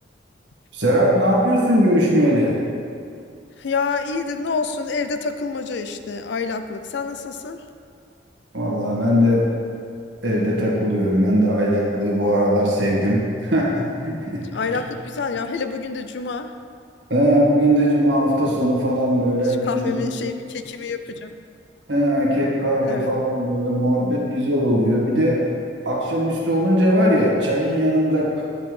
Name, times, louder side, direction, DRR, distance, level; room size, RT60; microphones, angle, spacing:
voice 1, 0.7-2.6 8.5-9.5 10.2-14.7 17.1-20.0 21.9-25.5 25.8-28.3, equal, 70° right, -4 dB, 1.6 m, -19 dB
voice 2, 3.6-7.6 14.5-16.5 19.4-21.3 22.8-23.1, left 4 dB, 65° left, 8 dB, 0.4 m, -27 dB
9.6 x 5.3 x 3.2 m, 2.4 s
head